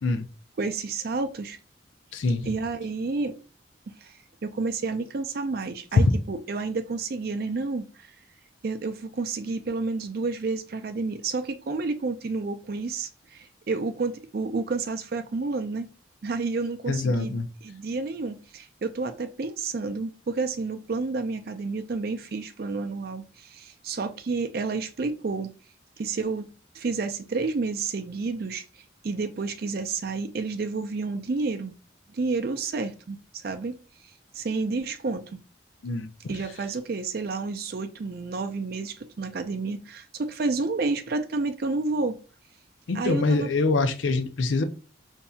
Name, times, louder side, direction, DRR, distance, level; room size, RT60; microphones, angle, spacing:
voice 1, 0.6-1.6 2.4-3.4 3.9-4.1 4.4-8.1 8.6-15.9 16.2-25.5 26.0-28.6 29.0-31.7 32.1-33.8 34.3-35.4 36.3-42.2 42.9-43.5, right 3 dB, 50° right, 0.4 m, -30 dB
voice 2, 2.1-2.4 16.9-17.5 35.8-36.1 42.9-44.6, left 3 dB, 80° left, 0.5 m, -25 dB
5.4 x 2.6 x 2.3 m
head